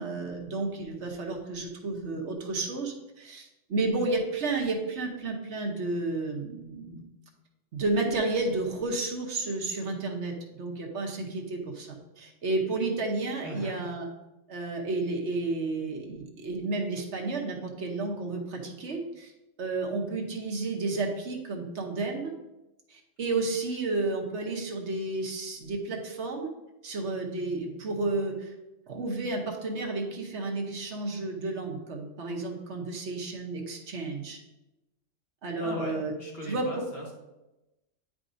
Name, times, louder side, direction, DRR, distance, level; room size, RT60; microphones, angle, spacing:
voice 1, 0.0-7.0 7.7-14.1 14.5-19.3 19.6-22.3 22.9-26.5 26.8-28.5 28.9-34.4 35.4-36.1 36.5-36.7, right 3 dB, 65° right, 1 dB, 1.2 m, -31 dB
voice 2, 13.4-13.8 35.6-37.1, equal, 50° left, -3 dB, 1.8 m, -38 dB
9.5 x 4.9 x 2.6 m, 0.99 s
omnidirectional pair, 1.3 m